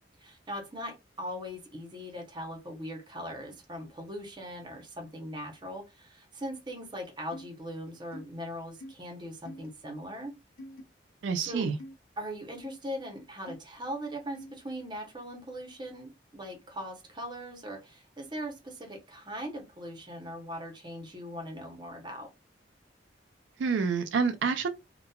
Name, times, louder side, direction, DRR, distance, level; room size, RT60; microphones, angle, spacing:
voice 1, 0.2-10.4 11.4-11.7 12.2-22.3, equal, 25° right, 0.7 m, -40 dB
sound 1, 7.3-7.5 8.1-8.2 8.8-8.9 9.5-9.7 10.6-10.8 11.8-12.0 12.6-12.8 13.5-13.6 14.4-14.5, left 1 dB, 55° left, 0.6 m, -44 dB
voice 2, 11.2-11.8 23.6-24.7, right 5 dB, 80° right, 0.4 m, -28 dB
2.8 x 2.2 x 2.3 m
head